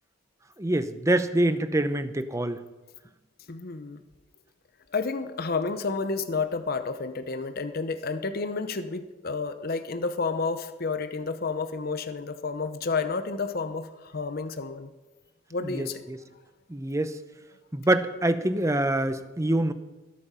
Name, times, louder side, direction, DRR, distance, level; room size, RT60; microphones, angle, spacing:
voice 1, 0.6-2.6 15.6-16.2 16.7-17.2 17.7-19.7, right 1 dB, 15° right, 11 dB, 0.7 m, -25 dB
voice 2, 3.5-4.0 4.9-14.9 15.5-16.0, left 4 dB, 50° left, 9 dB, 0.7 m, -30 dB
21.5 x 8.6 x 5.6 m, 1.2 s
head